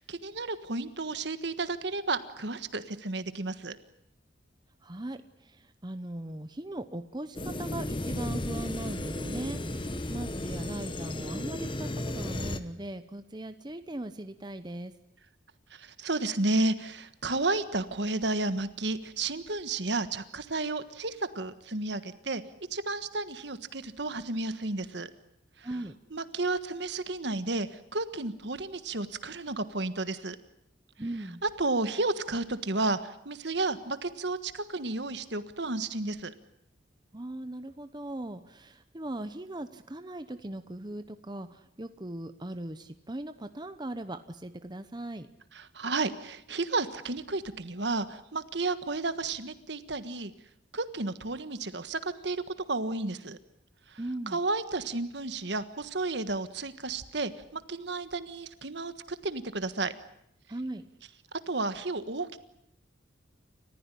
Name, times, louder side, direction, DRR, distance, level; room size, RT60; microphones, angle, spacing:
voice 1, 0.0-3.8 15.7-22.4 22.7-25.1 25.6-25.7 26.1-30.4 31.6-36.3 45.5-50.3 50.7-52.4 52.7-53.4 53.9-54.0 54.3-58.9 59.2-59.9 61.5-62.4, right 2 dB, 65° right, 12 dB, 1.5 m, -32 dB
voice 2, 4.8-14.9 25.6-26.0 31.0-31.4 37.1-45.3 54.0-54.4 60.5-60.8, right 1 dB, 20° right, 10 dB, 0.9 m, -39 dB
sound 1, 7.3-12.6, left 1 dB, 25° left, 1.3 m, -34 dB
29.5 x 15.0 x 10.0 m, 0.78 s
head